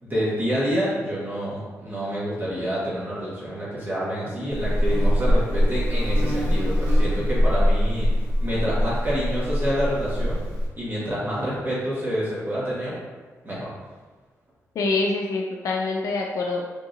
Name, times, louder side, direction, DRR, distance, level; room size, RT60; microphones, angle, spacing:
voice 1, 0.0-8.1 8.4-10.4 10.8-12.9 13.4-13.7, equal, 35° right, -8 dB, 1.4 m, -27 dB
Buzz, 4.5-10.7, equal, 90° right, 1.0 m, -22 dB
voice 2, 14.8-16.7, left 3 dB, 70° left, 0 dB, 0.4 m, -25 dB
3.8 x 3.5 x 2.7 m, 1.4 s
cardioid pair, 125°, 6 cm